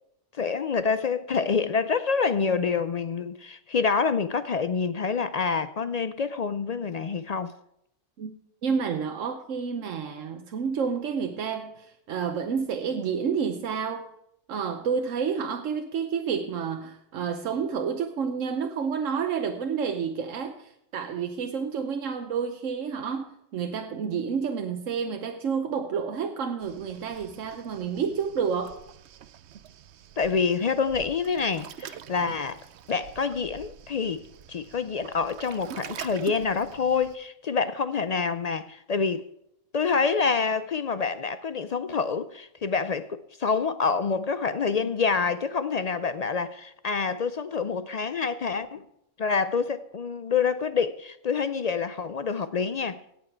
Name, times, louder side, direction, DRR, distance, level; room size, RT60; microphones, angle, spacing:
voice 1, 0.3-7.5 30.2-32.6 32.9-34.2 34.5-39.2 39.7-48.8 49.2-53.0, left 5 dB, 65° left, 0.4 m, -27 dB
voice 2, 8.6-14.1 14.5-28.8, right 6 dB, 80° right, 1.2 m, -29 dB
Waves surf, 26.6-37.2, right 10 dB, 65° right, 0.9 m, -45 dB
17.5 x 7.2 x 4.5 m
omnidirectional pair, 1.3 m